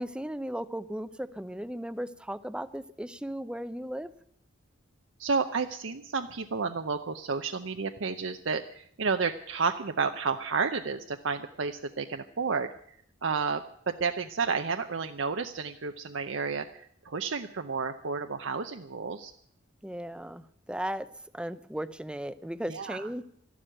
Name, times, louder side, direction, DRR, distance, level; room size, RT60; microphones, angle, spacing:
voice 1, 0.0-4.1 19.8-21.1 21.3-23.2, right 1 dB, 5° right, 14 dB, 0.6 m, -36 dB
voice 2, 5.2-13.0 13.2-19.3 22.7-23.1, right 5 dB, 65° right, 7 dB, 0.7 m, -31 dB
13.0 x 12.0 x 9.0 m, 0.67 s
head